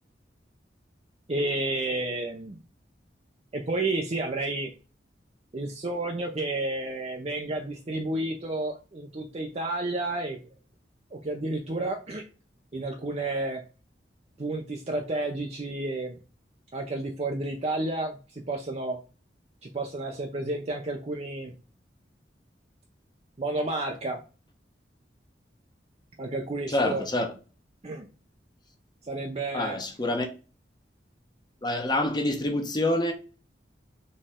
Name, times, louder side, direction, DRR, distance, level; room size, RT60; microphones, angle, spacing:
voice 1, 1.3-2.6 3.5-4.7 5.5-10.4 11.1-12.2 12.7-13.6 14.4-16.2 16.7-19.0 19.6-21.5 23.4-24.2 26.2-27.0 27.8-28.1 29.0-29.8, right 2 dB, 35° right, 0.6 m, -31 dB
voice 2, 26.7-27.3 29.5-30.3 31.6-33.1, left 1 dB, 25° left, 0.9 m, -26 dB
4.2 x 3.2 x 3.6 m
head